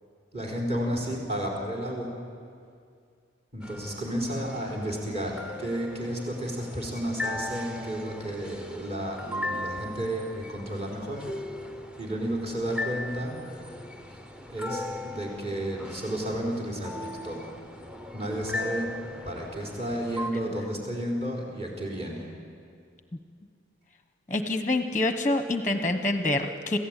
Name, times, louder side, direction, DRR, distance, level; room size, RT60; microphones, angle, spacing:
voice 1, 0.3-2.1 3.5-11.2 12.0-13.4 14.5-17.4 18.1-18.9 19.2-22.3, right 1 dB, 30° right, -1 dB, 4.3 m, -32 dB
sound 1, 3.6-20.3, left 2 dB, 5° right, 0.9 m, -38 dB
voice 2, 24.3-26.8, left 2 dB, 15° left, 8 dB, 1.1 m, -26 dB
27.5 x 16.0 x 9.1 m, 2.3 s
head